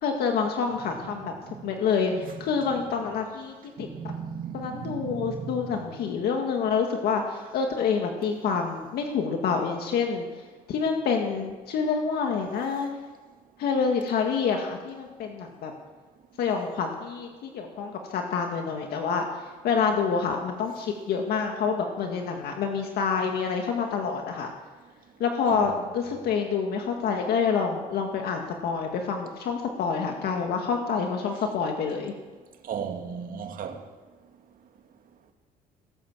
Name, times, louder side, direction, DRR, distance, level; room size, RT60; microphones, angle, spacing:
voice 1, 0.0-1.3 1.6-4.1 4.5-10.3 10.7-12.9 13.6-15.7 16.4-19.3 19.6-24.5 25.2-32.1, left 5 dB, 70° left, 1.9 m, -27 dB
voice 2, 3.8-5.7 6.0-6.2 25.5-25.6 32.7-33.8, right 7 dB, 55° right, 2.1 m, -35 dB
18.0 x 11.0 x 7.3 m
cardioid pair, 110°, 17 cm